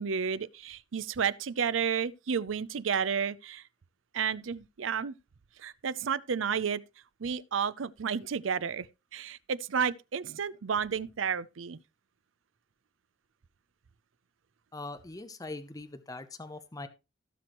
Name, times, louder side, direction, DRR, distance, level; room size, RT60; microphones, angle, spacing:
voice 1, 0.0-3.6 4.1-5.1 5.6-6.8 7.2-8.9 9.1-11.8, right 6 dB, 90° right, 0.5 m, -31 dB
voice 2, 14.7-16.9, left 2 dB, 20° left, 0.7 m, -42 dB
17.0 x 6.1 x 3.0 m
head